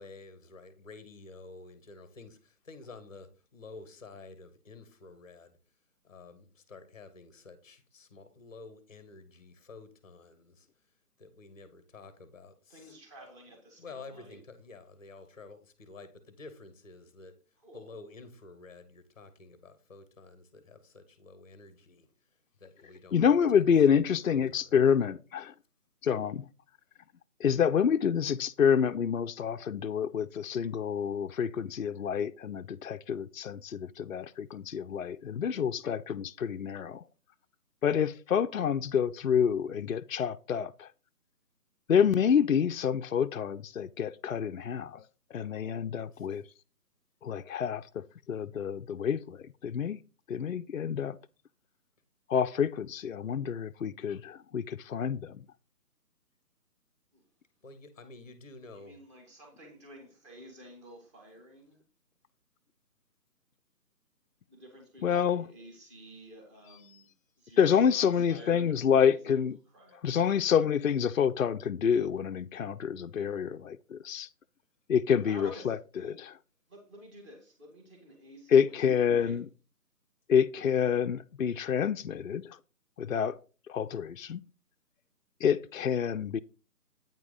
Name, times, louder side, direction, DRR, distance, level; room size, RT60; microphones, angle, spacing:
voice 1, 0.0-5.6 6.0-10.7 11.2-12.9 13.8-17.3 17.7-22.1 22.6-23.2 23.9-24.8 46.1-46.3 57.6-59.0, left 3 dB, 25° left, 0.8 m, -50 dB
voice 2, 12.7-14.4 17.6-17.9 57.1-57.2 58.7-61.8 64.5-67.1 67.4-69.4 69.7-70.4 75.2-76.2 76.7-78.8 79.1-79.4, equal, 20° right, 1.9 m, -51 dB
voice 3, 23.1-25.5 26.0-26.5 27.4-37.0 37.8-40.9 41.9-45.0 45.3-46.4 47.2-50.0 50.3-51.2 52.3-55.4 65.0-65.5 67.6-69.6 70.0-74.3 74.9-75.8 78.5-79.4 80.3-82.6 83.0-83.4 83.7-84.4 85.4-86.4, left 7 dB, 60° left, 0.5 m, -28 dB
8.8 x 5.9 x 3.8 m
figure-of-eight pair, 150°, 47 cm